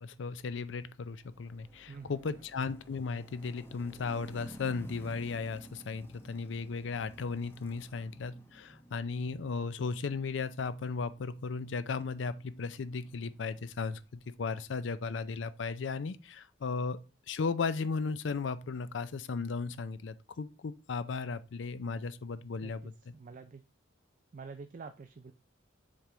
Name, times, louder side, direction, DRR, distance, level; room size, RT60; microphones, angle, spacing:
voice 1, 0.0-17.0 17.3-23.1, left 4 dB, 75° left, 0.5 m, -36 dB
sound 1, 1.1-14.3, equal, 10° left, 0.9 m, -54 dB
voice 2, 1.9-2.4 22.6-23.6 24.3-25.3, right 4 dB, 45° right, 0.4 m, -48 dB
7.3 x 3.5 x 3.8 m
head